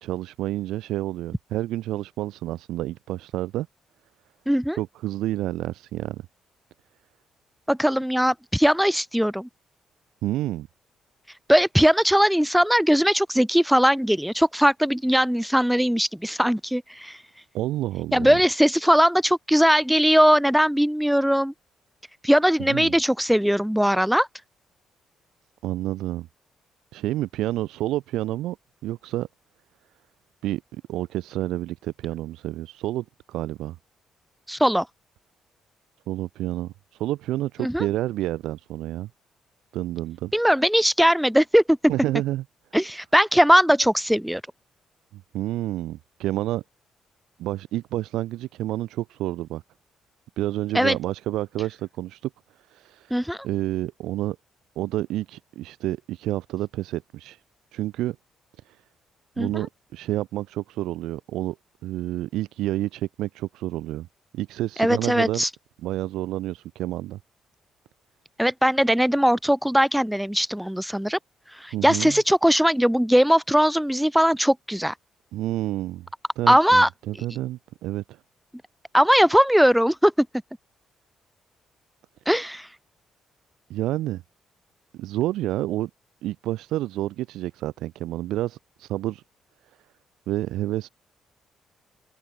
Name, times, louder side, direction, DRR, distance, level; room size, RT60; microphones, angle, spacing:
voice 1, 0.0-3.7 4.7-6.2 10.2-10.7 17.5-18.4 22.7-22.9 25.6-26.3 26.9-28.6 28.8-29.3 30.4-33.8 36.1-36.7 37.0-39.1 39.7-40.3 41.9-42.4 45.1-46.6 47.4-49.6 50.4-52.3 52.7-54.4 54.8-57.4 57.7-58.2 58.6-58.8 59.4-61.6 61.8-64.1 64.3-65.4 65.8-67.2 71.7-72.2 75.3-76.1 76.4-78.2 83.7-84.2 84.9-85.9 86.2-89.2 90.3-90.9, right 15 dB, 90° right, 2.6 m, -29 dB
voice 2, 4.5-4.8 7.7-9.5 11.5-17.2 18.1-21.5 22.2-24.3 34.5-34.9 37.6-37.9 40.3-41.8 42.7-44.4 50.7-51.0 53.1-53.5 59.4-59.7 64.8-65.5 68.4-71.2 71.5-74.9 76.5-76.9 78.9-80.3 82.2-82.7, equal, ahead, 1.7 m, -20 dB
open air
cardioid pair, 90°, 0 cm